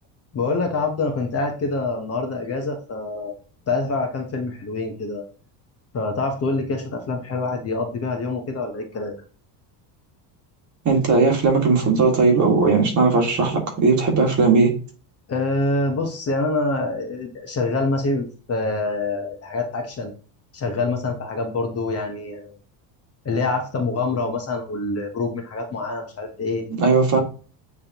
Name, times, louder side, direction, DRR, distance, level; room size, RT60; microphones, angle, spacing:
voice 1, 0.3-3.3 3.7-5.2 5.9-9.2 15.3-20.1 20.5-22.5 23.2-26.6, left 3 dB, 30° left, 1.2 m, -25 dB
voice 2, 10.8-14.7 26.8-27.2, right 4 dB, 35° right, 2.0 m, -18 dB
8.7 x 3.6 x 3.0 m
cardioid pair, 140°, 47 cm